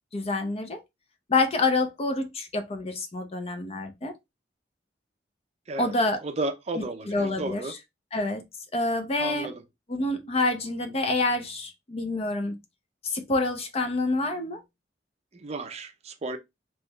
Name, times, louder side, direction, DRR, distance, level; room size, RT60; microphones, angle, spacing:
voice 1, 0.1-0.8 1.3-4.1 5.8-6.2 7.1-7.6 8.1-8.4 8.7-9.5 9.9-12.6 13.0-14.6, left 2 dB, 35° left, 0.6 m, -27 dB
voice 2, 6.2-7.7 9.2-9.6 15.3-16.4, right 2 dB, 35° right, 0.5 m, -33 dB
3.6 x 3.0 x 2.2 m
head